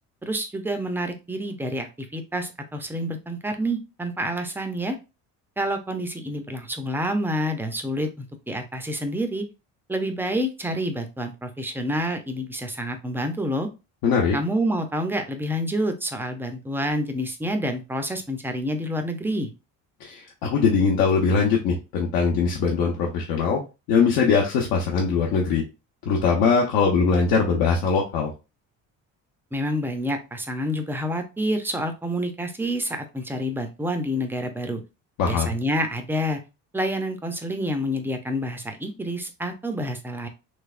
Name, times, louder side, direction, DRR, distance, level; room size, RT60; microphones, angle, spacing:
voice 1, 0.2-5.0 5.6-9.4 9.9-13.7 14.3-19.5 29.5-34.8 35.3-36.4 36.7-40.3, equal, 5° right, 6 dB, 0.3 m, -28 dB
voice 2, 14.0-14.4 20.0-23.6 23.9-25.6 26.1-28.3 35.2-35.5, left 5 dB, 90° left, -1 dB, 0.9 m, -21 dB
3.3 x 3.2 x 2.3 m, 0.28 s
cardioid pair, 150°, 34 cm